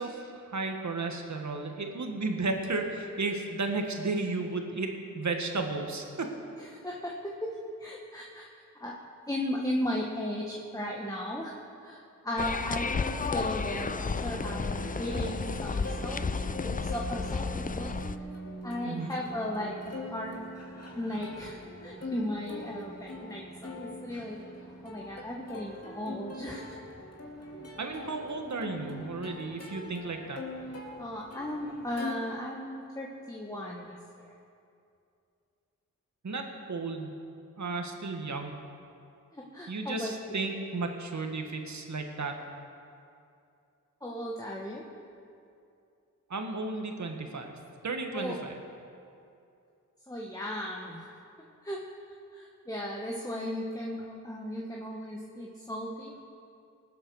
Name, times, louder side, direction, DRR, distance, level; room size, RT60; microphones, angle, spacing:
voice 1, 0.0-6.3 18.8-19.1 27.8-30.4 36.2-37.1 37.6-38.6 39.7-42.4 46.3-47.5 47.8-48.5, right 3 dB, 55° right, 4 dB, 1.6 m, -33 dB
voice 2, 6.6-7.5 7.8-8.5 8.8-9.0 9.3-11.5 11.8-13.9 14.2-17.9 18.6-20.3 20.9-24.4 24.8-26.8 31.0-34.4 39.3-40.1 44.0-44.9 48.1-48.3 50.1-51.0 51.6-51.8 52.1-56.2, left 1 dB, 10° left, -2 dB, 1.3 m, -36 dB
sound 1, 12.4-18.2, left 4 dB, 25° left, 0.4 m, -32 dB
Plucked string instrument, 13.2-32.1, left 2 dB, 50° left, 2.3 m, -44 dB
Piano, 13.7-29.1, right 4 dB, 35° right, 1.4 m, -46 dB
19.5 x 7.7 x 6.3 m, 2.6 s
cardioid pair, 65°, 33 cm